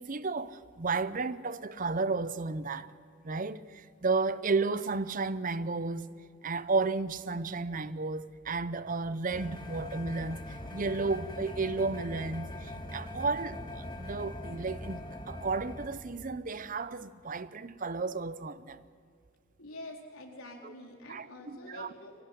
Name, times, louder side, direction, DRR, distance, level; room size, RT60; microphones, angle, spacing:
voice 1, 0.0-2.9 3.2-6.1 6.4-18.8 20.6-20.7 21.1-21.9, right 3 dB, 40° right, 0.6 m, -33 dB
sound 1, 9.3-15.9, left 1 dB, 20° left, 1.9 m, -42 dB
voice 2, 19.6-22.2, left 1 dB, 80° left, 4.1 m, -46 dB
23.5 x 18.0 x 9.8 m
head